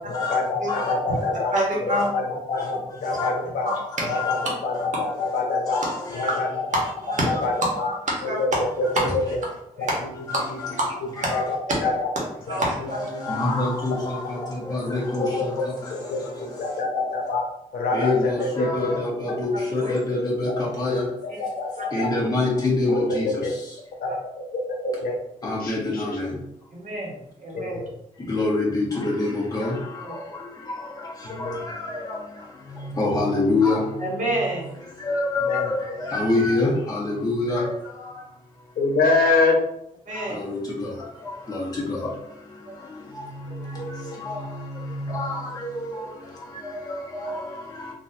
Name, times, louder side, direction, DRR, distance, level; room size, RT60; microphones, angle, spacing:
voice 1, 0.1-1.5 1.8-3.7 4.1-4.4 4.6-5.8 6.1-6.5 6.7-6.8 7.3-7.9 8.2-9.4 9.8-9.9 10.5-10.6 11.3-11.6 11.8-12.1 12.5-12.6 13.1-13.5 14.0-14.1 14.4-14.5 15.2-15.4 15.9-16.2 16.6-17.4 17.7-18.9 19.3-19.4 20.3-20.6 20.9-22.1 22.9-23.5 24.0-24.1 24.5-26.2 27.5-27.8 31.3-31.6 35.4-35.7 38.8-39.6, left 3 dB, 85° left, 0 dB, 0.8 m, -26 dB
voice 2, 0.7-1.3 1.9-2.1 2.6-2.7 3.0-3.3 3.7-4.5 4.7-4.9 5.2-5.4 5.7-6.4 10.3-10.8 11.2-11.4 12.5-16.6 17.9-21.1 21.9-23.5 25.4-26.4 28.2-32.2 32.7-33.9 35.0-38.1 40.1-42.0 42.9-46.1 46.5-47.9, left 2 dB, 25° left, -5 dB, 1.3 m, -27 dB
voice 3, 1.5-2.1 3.6-4.2 6.7-7.4 7.8-8.4 8.9-9.0 9.8-9.9 10.8-10.9 11.2-11.3 12.5-13.0 19.5-19.9 24.1-24.2 26.7-27.8 34.0-34.7 40.1-40.4, right 1 dB, 60° right, -3 dB, 1.3 m, -27 dB
3.9 x 2.6 x 2.7 m, 0.80 s
wide cardioid pair, 110°, 15 cm